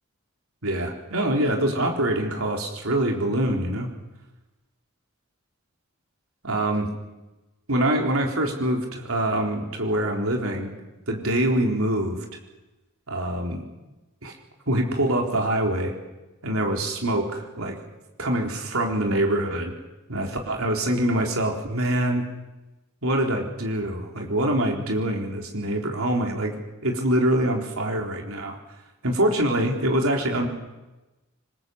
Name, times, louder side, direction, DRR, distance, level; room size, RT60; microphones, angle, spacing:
voice 1, 0.6-3.9 6.4-6.9 7.7-10.7 11.1-12.3 13.1-13.6 14.2-14.3 14.7-15.9 16.4-17.8 18.2-19.7 20.1-22.3 23.0-26.5 26.8-28.6 29.0-30.5, right 1 dB, 80° right, 2 dB, 4.0 m, -24 dB
25.5 x 21.0 x 8.0 m, 1.1 s
head